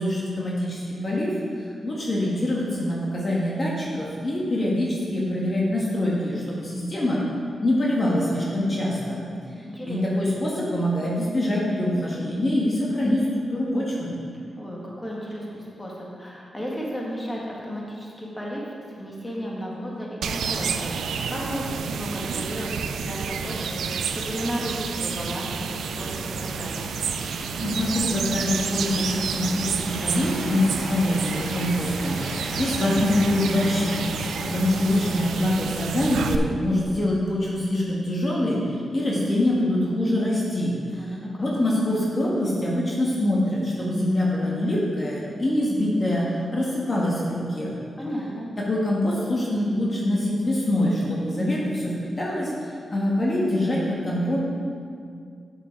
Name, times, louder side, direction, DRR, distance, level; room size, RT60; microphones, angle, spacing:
voice 1, 0.0-7.2 7.6-9.2 9.8-14.1 27.3-47.7 48.6-54.4, left 1 dB, 40° left, -5 dB, 1.7 m, -25 dB
voice 2, 9.6-10.0 14.3-22.7 23.0-26.8 34.7-34.9 40.9-41.5 48.0-48.5, equal, 15° left, -4 dB, 1.9 m, -34 dB
sound 1, 20.2-36.4, right 6 dB, 85° right, 0.4 m, -30 dB
sound 2, 25.8-35.3, left 1 dB, 85° left, 2.0 m, -36 dB
7.1 x 6.9 x 4.5 m, 2.2 s
cardioid pair, 60°, 0 cm